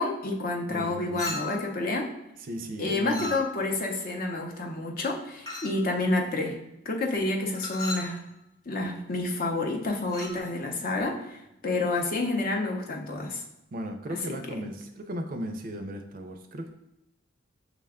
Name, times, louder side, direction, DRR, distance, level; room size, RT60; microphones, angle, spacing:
voice 1, 0.0-2.1 2.8-6.6 6.9-8.3 8.7-13.4 14.3-14.4, left 2 dB, 45° left, 1 dB, 0.6 m, -29 dB
voice 2, 0.7-1.3 2.4-3.3 13.7-16.7, equal, 45° right, 6 dB, 0.4 m, -36 dB
Chink clink, 1.2-1.7 3.1-3.8 5.5-5.8 7.5-8.1 10.0-10.4, left 3 dB, 15° left, 0.9 m, -36 dB
5.8 x 2.2 x 3.5 m, 0.88 s
head